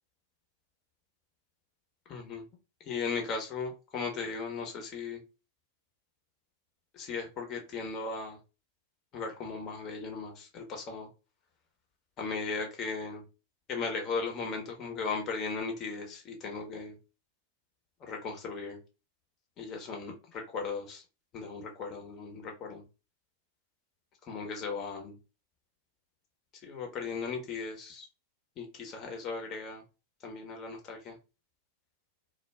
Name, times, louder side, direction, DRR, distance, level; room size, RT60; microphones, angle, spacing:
voice 1, 2.1-2.5 2.9-5.2 6.9-8.4 9.1-11.1 12.2-13.2 13.7-17.0 18.0-18.8 19.6-21.0 21.3-22.8 24.3-25.2 26.6-28.1 28.6-29.8 30.2-31.2, left 4 dB, 35° left, 2 dB, 0.9 m, -37 dB
2.2 x 2.2 x 3.4 m, 0.30 s
figure-of-eight pair, 95°, 0 cm